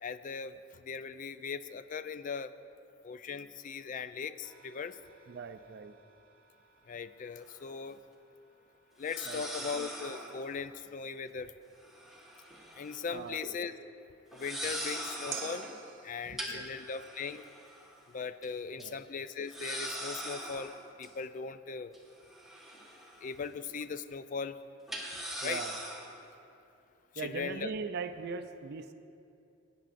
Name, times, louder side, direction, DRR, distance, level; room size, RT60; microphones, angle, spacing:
voice 1, 0.0-2.5 3.0-5.0 6.9-8.0 9.0-11.5 12.8-13.7 14.3-15.7 16.0-17.4 18.1-20.7 21.0-21.9 23.2-24.6 25.4-25.6 27.1-27.7, left 5 dB, 40° left, 12 dB, 0.3 m, -39 dB
sound 1, 4.4-13.8 15.3-17.4, right 8 dB, 70° right, 0.8 m, -53 dB
voice 2, 5.3-5.9 9.3-9.4 13.1-13.4 16.3-16.6 18.8-19.0 25.4-25.7 27.2-28.9, right 5 dB, 55° right, 9 dB, 0.4 m, -40 dB
sound 2, 7.4-7.5 9.0-10.4 11.8-13.0 13.3-13.5 14.3-15.7 16.4-18.0 18.4-18.5 18.8-18.9 19.5-21.1 21.9-23.4 23.7-23.8 24.9-26.2, equal, ahead, 1.2 m, -41 dB
17.5 x 9.2 x 2.5 m, 2.6 s
head